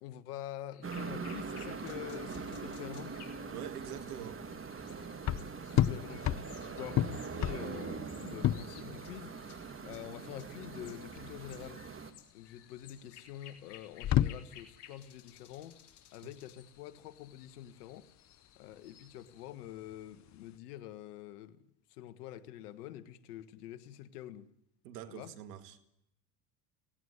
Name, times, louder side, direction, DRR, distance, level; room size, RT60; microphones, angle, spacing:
voice 1, 0.0-3.2 5.6-9.5 9.8-11.8 12.3-15.8 16.1-18.1 18.6-21.6 21.9-24.5 25.1-25.3, left 12 dB, 85° left, 14 dB, 1.6 m, -46 dB
sound 1, 0.7-19.5, left 10 dB, 60° left, 3.7 m, -59 dB
sound 2, 0.8-12.1, right 5 dB, 30° right, 2.5 m, -42 dB
sound 3, 2.4-20.6, left 12 dB, 40° left, 0.7 m, -35 dB
voice 2, 3.5-4.4 24.8-25.8, right 11 dB, 90° right, 11 dB, 2.0 m, -45 dB
18.0 x 17.0 x 9.7 m, 0.77 s
supercardioid pair, 85°, 45 cm